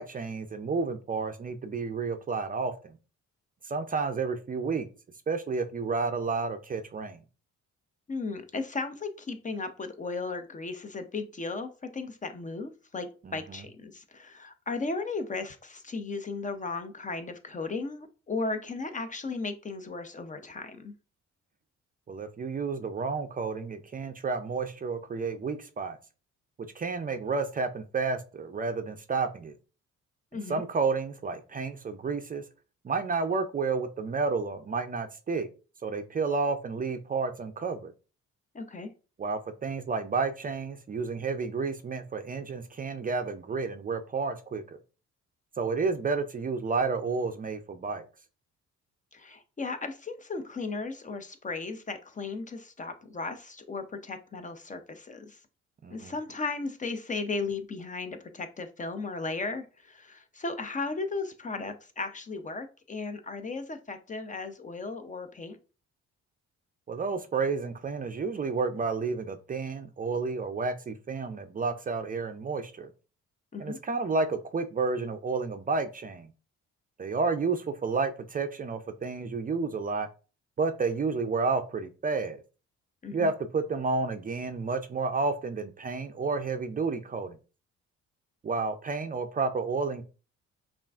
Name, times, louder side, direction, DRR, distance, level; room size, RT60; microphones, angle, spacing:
voice 1, 0.0-3.0 3.6-4.9 5.3-7.2 13.2-13.6 22.1-26.0 26.8-29.5 30.5-32.4 32.8-35.5 35.8-37.9 39.2-44.6 45.6-48.0 55.8-56.1 66.9-72.9 73.6-76.3 77.0-80.1 80.6-82.4 83.1-87.4 88.4-90.0, right 4 dB, 30° right, 8 dB, 0.4 m, -31 dB
voice 2, 8.1-20.9 30.3-30.6 38.5-38.9 49.1-55.4 55.9-65.6 73.5-73.8 83.0-83.3, left 3 dB, 25° left, 9 dB, 0.5 m, -36 dB
5.5 x 2.4 x 2.4 m, 0.34 s
cardioid pair, 90°, 30 cm